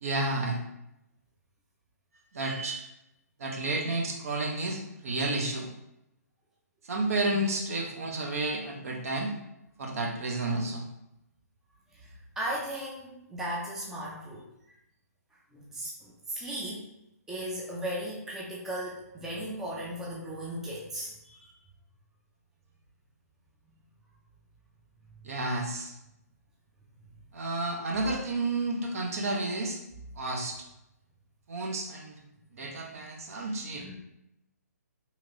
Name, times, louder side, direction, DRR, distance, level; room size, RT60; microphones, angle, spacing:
voice 1, 0.0-0.6 2.3-2.8 3.4-5.7 6.8-9.3 9.8-10.9 25.2-25.9 27.3-29.8 30.2-30.6 31.5-32.2 32.5-33.9, right 2 dB, 55° right, 1 dB, 0.7 m, -31 dB
voice 2, 11.9-14.5 15.5-16.9 17.3-21.5 32.9-33.0 33.8-33.9, right 1 dB, 5° right, -5 dB, 0.4 m, -37 dB
3.0 x 2.8 x 2.5 m, 0.85 s
hypercardioid pair, 145°, 9 cm